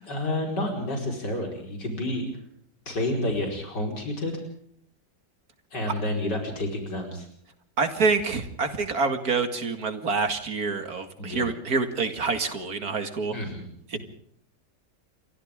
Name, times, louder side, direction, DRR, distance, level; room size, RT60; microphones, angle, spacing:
voice 1, 0.0-2.3 2.9-4.4 5.7-7.3 11.2-11.4 13.3-13.7, left 1 dB, 85° left, 1 dB, 5.6 m, -29 dB
voice 2, 7.8-13.4 13.9-14.0, right 4 dB, 60° right, 8 dB, 2.6 m, -27 dB
28.5 x 24.5 x 3.7 m, 0.65 s
omnidirectional pair, 1.8 m